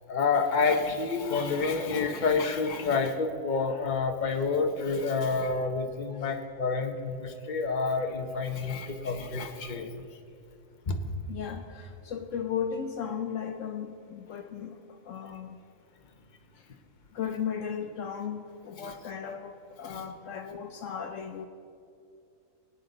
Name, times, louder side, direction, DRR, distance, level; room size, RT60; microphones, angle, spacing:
voice 1, 0.1-10.0 10.9-11.0 18.8-18.9 19.9-20.0, left 4 dB, 40° left, 4 dB, 1.0 m, -28 dB
voice 2, 11.3-15.6 16.6-16.7 17.1-21.5, left 7 dB, 70° left, 6 dB, 1.0 m, -36 dB
22.0 x 9.0 x 4.0 m, 2.5 s
omnidirectional pair, 1.5 m